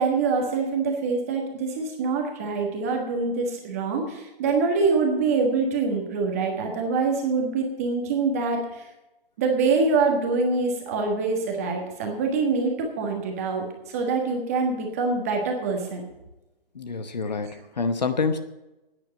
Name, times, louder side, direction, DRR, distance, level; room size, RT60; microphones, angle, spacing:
voice 1, 0.0-8.9 9.4-16.0, right 4 dB, 15° right, 1 dB, 1.4 m, -25 dB
voice 2, 16.7-18.4, left 4 dB, 45° left, 9 dB, 1.0 m, -27 dB
11.0 x 9.6 x 7.8 m, 0.99 s
hypercardioid pair, 175°, 30 cm